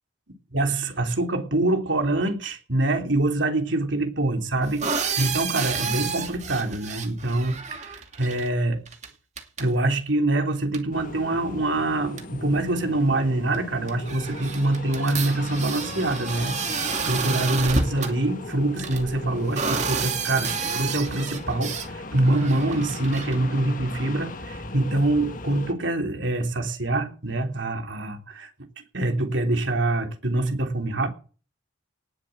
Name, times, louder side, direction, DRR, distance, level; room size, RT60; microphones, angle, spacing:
voice 1, 0.5-8.8 9.6-28.5 28.8-31.1, right 2 dB, 70° right, 3.2 m, -25 dB
sound 1, 4.6-8.5 8.9-9.1 9.4-9.7 10.7-10.8 11.8-11.9 12.2-12.3 13.5-13.6 13.9-18.1 18.8-21.9 22.2-23.4, right 5 dB, 35° right, 2.5 m, -30 dB
sound 2, 10.9-25.7, left 2 dB, 45° left, 1.6 m, -37 dB
18.5 x 7.5 x 7.9 m
head